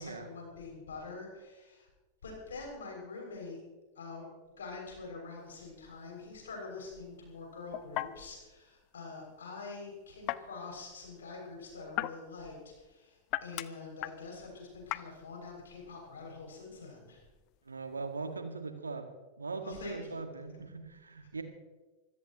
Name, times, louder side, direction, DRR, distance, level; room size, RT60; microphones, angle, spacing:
voice 1, 0.0-1.9 2.2-3.6 3.9-4.3 4.6-17.2 19.6-20.2, left 3 dB, 65° left, 0 dB, 6.6 m, -45 dB
sound 1, 5.4-18.4, left 18 dB, 40° left, 0.6 m, -43 dB
voice 2, 17.7-19.1 19.4-21.4, right 4 dB, 75° right, 7 dB, 1.8 m, -40 dB
25.0 x 16.0 x 3.1 m, 1.2 s
figure-of-eight pair, 90°, 0 cm